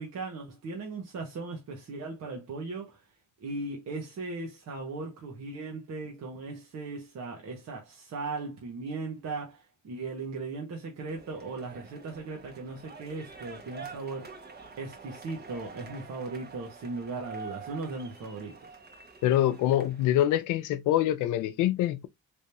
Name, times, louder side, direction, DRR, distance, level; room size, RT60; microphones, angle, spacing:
voice 1, 0.0-3.0 3.4-14.3 14.8-18.6, right 3 dB, 60° right, 1.3 m, -38 dB
sound 1, 11.1-20.4, right 4 dB, 35° right, 1.2 m, -47 dB
voice 2, 19.2-22.1, left 12 dB, 85° left, 0.5 m, -25 dB
3.5 x 3.1 x 2.8 m
cardioid pair, 90°, 30 cm